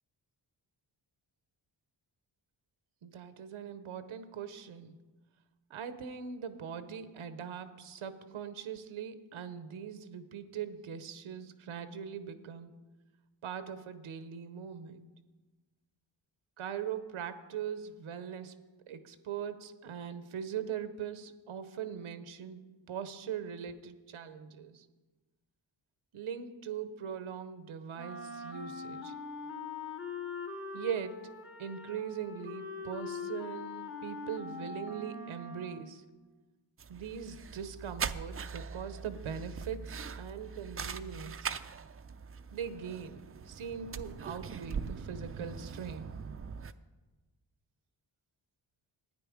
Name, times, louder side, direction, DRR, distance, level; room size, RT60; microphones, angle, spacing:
voice 1, 3.0-4.9 5.7-12.7 13.4-15.1 16.6-18.5 18.9-22.6 22.9-24.9 26.1-29.1 30.7-31.3 31.6-36.1 36.9-41.5 42.5-46.1, right 8 dB, 85° right, 11 dB, 0.9 m, -41 dB
Wind instrument woodwind instrument, 27.9-36.1, left 4 dB, 25° left, 1.3 m, -42 dB
sound 1, 36.8-46.7, right 6 dB, 30° right, 0.4 m, -41 dB
11.5 x 9.5 x 4.9 m, 1.2 s
cardioid pair, 70°, 47 cm